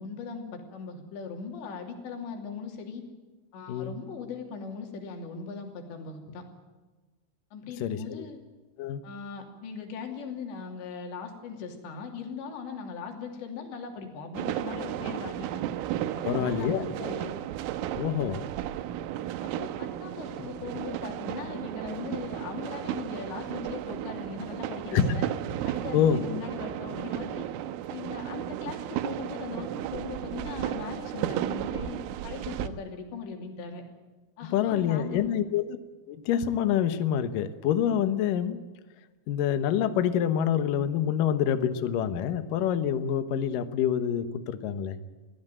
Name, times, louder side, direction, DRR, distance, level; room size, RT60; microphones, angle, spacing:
voice 1, 0.0-3.0 3.5-6.4 7.5-8.4 9.0-15.5 16.2-17.3 19.4-25.3 25.6-27.5 27.9-33.8 34.4-35.2, left 5 dB, 65° left, 3 dB, 4.9 m, -39 dB
sound 1, 14.3-32.7, right 12 dB, 85° right, 3.6 m, -34 dB
voice 2, 16.3-17.1 18.0-18.4 24.9-25.1 25.9-26.2 34.5-35.8 36.1-38.6 39.3-45.0, left 9 dB, 85° left, 10 dB, 1.9 m, -26 dB
22.5 x 16.0 x 9.0 m, 1.3 s
omnidirectional pair, 5.7 m